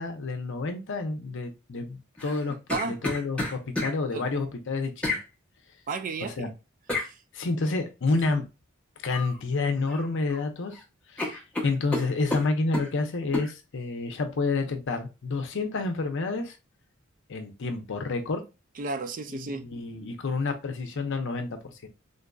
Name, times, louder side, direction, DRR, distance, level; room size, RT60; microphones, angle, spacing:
voice 1, 0.0-5.2 6.2-6.5 7.3-8.4 9.0-10.8 11.1-16.6 17.3-18.4 19.3-21.9, left 3 dB, 60° left, 0.6 m, -29 dB
sound 1, 2.2-3.9 5.0-5.2 6.9-7.1 9.1-9.4 9.7-10.4 10.7-10.8 11.2-12.9 13.3-13.5, left 2 dB, 5° left, 0.9 m, -31 dB
voice 2, 5.9-6.5 18.8-19.7, right 4 dB, 40° right, 0.3 m, -32 dB
3.9 x 2.5 x 2.2 m
head